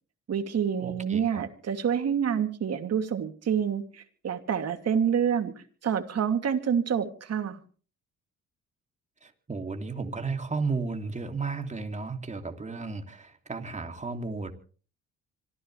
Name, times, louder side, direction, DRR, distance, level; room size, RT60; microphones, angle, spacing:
voice 1, 0.3-5.5 5.8-7.6, right 8 dB, 55° right, 6 dB, 2.8 m, -27 dB
voice 2, 0.8-1.4 9.2-14.5, right 4 dB, 25° right, 5 dB, 2.8 m, -34 dB
26.0 x 15.0 x 3.4 m, 0.41 s
cardioid pair, 90°, 30 cm